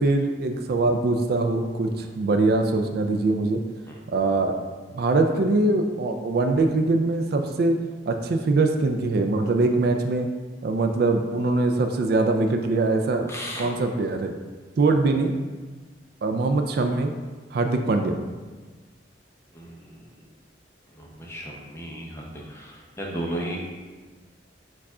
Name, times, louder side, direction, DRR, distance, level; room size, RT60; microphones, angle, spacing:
voice 1, 0.0-3.6 4.1-4.6 4.9-7.8 8.1-10.3 10.6-13.3 13.6-14.3 14.8-15.3 16.2-17.1 17.5-18.2, right 3 dB, 60° right, 5 dB, 0.4 m, -22 dB
voice 2, 13.3-13.7 19.5-20.1 21.0-23.6, right 1 dB, 15° left, -2 dB, 0.7 m, -35 dB
4.7 x 2.4 x 4.8 m, 1.4 s
head